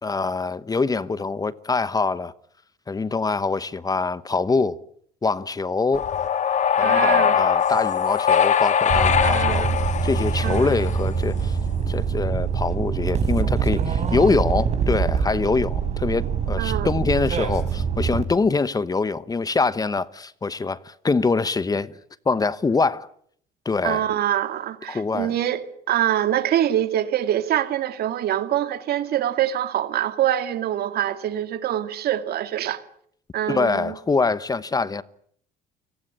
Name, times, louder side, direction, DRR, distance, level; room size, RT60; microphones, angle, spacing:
voice 1, 0.0-2.3 2.9-4.8 5.2-6.1 6.8-9.7 10.0-11.6 11.9-22.0 22.3-23.1 23.6-24.1 24.9-25.3 33.5-35.0, left 4 dB, 20° left, 1.0 m, -24 dB
sound 1, 5.9-11.2, left 8 dB, 45° left, 1.5 m, -21 dB
voice 2, 6.8-7.4 9.2-9.7 10.4-10.7 16.6-16.9 23.8-32.8 33.3-33.9, right 11 dB, 65° right, 2.3 m, -24 dB
sound 2, 8.9-18.2, right 6 dB, 40° right, 5.2 m, -24 dB
29.5 x 18.5 x 8.8 m
cardioid pair, 110°, 17 cm